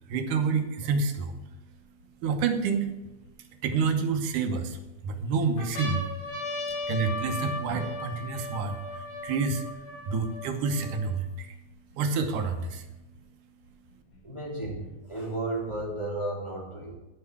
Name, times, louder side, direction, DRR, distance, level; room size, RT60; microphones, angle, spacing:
voice 1, 0.1-1.4 2.2-2.9 3.4-6.1 6.9-9.7 10.1-11.6 12.0-12.9, right 5 dB, 80° right, 5 dB, 2.6 m, -28 dB
sound 1, 1.3-1.4 2.0-3.3 4.0-4.8 5.2-5.3 5.6-11.2 11.9-12.0 12.2-13.2 14.1-15.2, left 1 dB, 80° left, 4.0 m, -37 dB
voice 2, 14.2-16.9, right 2 dB, 10° left, -4 dB, 2.3 m, -33 dB
12.0 x 5.6 x 8.3 m, 1.0 s
omnidirectional pair, 3.6 m